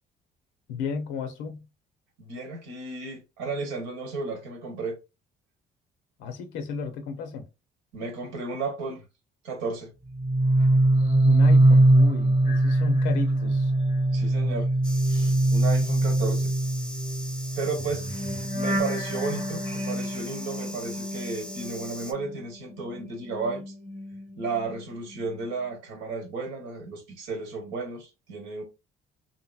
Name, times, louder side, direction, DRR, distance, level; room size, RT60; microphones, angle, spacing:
voice 1, 0.7-1.7 6.2-7.5 11.2-13.7, left 5 dB, 85° left, 0.7 m, -34 dB
voice 2, 2.2-5.0 7.9-9.0 9.4-9.9 14.1-14.7 15.1-16.5 17.5-18.0 18.5-23.6 24.4-28.6, right 3 dB, 85° right, 1.0 m, -33 dB
sound 1, 10.1-22.4 22.7-24.8 25.1-25.4, right 1 dB, 30° right, 0.9 m, -23 dB
sound 2, 14.8-22.1, equal, 5° left, 0.5 m, -41 dB
2.8 x 2.6 x 2.3 m
supercardioid pair, 75°, 19 cm